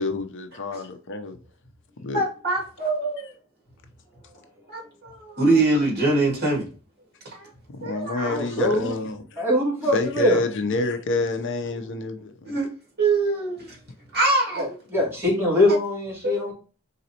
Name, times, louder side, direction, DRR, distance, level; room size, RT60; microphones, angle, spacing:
voice 1, 0.0-1.4 2.0-2.2 7.7-9.5 9.9-12.5, left 2 dB, 60° left, 0.6 m, -27 dB
voice 2, 2.1-3.3 4.7-6.7 7.3-7.5 7.8-8.4 12.5-12.7 13.0-13.8 14.1-14.8 16.2-16.5, right 2 dB, 50° right, 2.1 m, -23 dB
voice 3, 8.2-8.9 9.4-10.4 14.6-16.5, left 1 dB, 10° right, 2.3 m, -22 dB
4.1 x 3.9 x 2.8 m
head